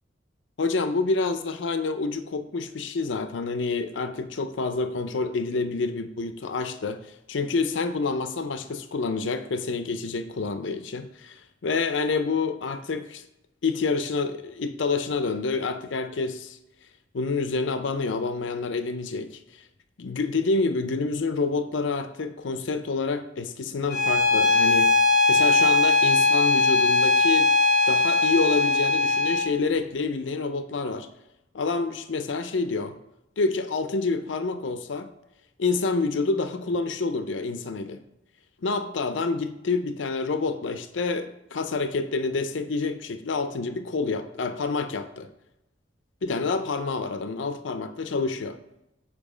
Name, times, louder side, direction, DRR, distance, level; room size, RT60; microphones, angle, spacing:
voice 1, 0.6-7.0 7.3-13.2 13.6-16.6 17.1-19.6 20.0-25.0 25.3-27.5 27.9-31.1 31.5-32.9 33.4-35.1 35.6-38.0 38.6-45.3 46.2-48.5, left 4 dB, 70° left, 10 dB, 0.5 m, -28 dB
Bowed string instrument, 23.9-29.5, left 3 dB, 55° left, 1.0 m, -20 dB
7.5 x 4.9 x 4.9 m, 0.89 s
head